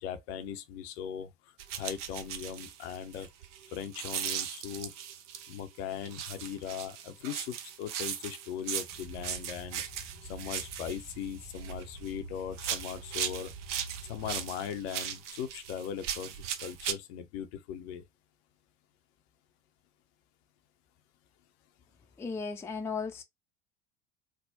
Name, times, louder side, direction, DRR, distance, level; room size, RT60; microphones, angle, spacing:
voice 1, 0.0-3.3 3.7-4.9 5.5-9.8 10.2-13.5 14.1-16.4 16.6-18.0, left 9 dB, 55° left, 0.6 m, -39 dB
sound 1, 1.6-5.6 6.0-12.2 12.5-16.9, right 9 dB, 70° right, 0.5 m, -38 dB
sound 2, 8.9-14.5, right 2 dB, 40° right, 1.5 m, -47 dB
voice 2, 22.2-23.2, left 5 dB, 5° left, 0.4 m, -35 dB
3.4 x 2.1 x 2.5 m
figure-of-eight pair, 70°, 37 cm